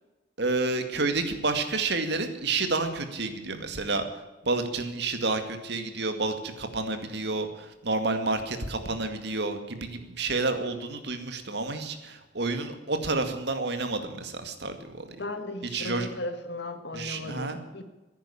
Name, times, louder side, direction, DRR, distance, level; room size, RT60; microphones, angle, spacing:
voice 1, 0.4-4.0 4.4-15.2 15.7-16.1 16.9-17.6, right 3 dB, 65° right, 7 dB, 2.1 m, -30 dB
voice 2, 15.2-17.8, left 2 dB, 65° left, 8 dB, 2.0 m, -36 dB
14.5 x 11.0 x 8.7 m, 1.1 s
head